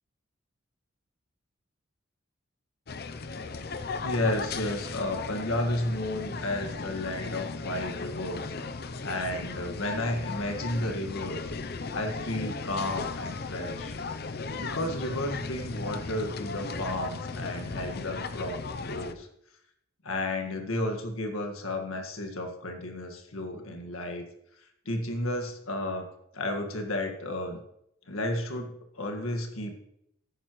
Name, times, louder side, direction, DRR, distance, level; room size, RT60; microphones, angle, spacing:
sound 1, 2.9-19.1, left 4 dB, 50° left, 0.6 m, -36 dB
voice 1, 4.0-8.5 9.0-11.5 11.9-13.9 14.5-19.3 20.0-24.2 24.9-26.1 26.3-27.6 28.1-29.7, left 1 dB, 90° left, 4 dB, 1.7 m, -32 dB
14.0 x 11.0 x 3.1 m, 0.75 s
head